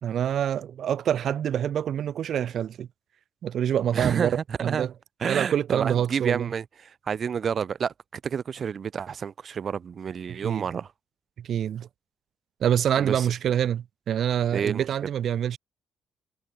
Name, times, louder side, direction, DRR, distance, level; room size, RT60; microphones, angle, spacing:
voice 1, 0.0-2.9 3.4-4.9 5.3-6.5 10.3-10.7 11.4-11.9 12.6-15.6, right 9 dB, 65° right, 4.8 m, -26 dB
voice 2, 3.9-4.9 5.2-10.9 13.0-13.3 14.5-14.9, right 7 dB, 50° right, 1.1 m, -29 dB
cardioid pair, 90°, 0 cm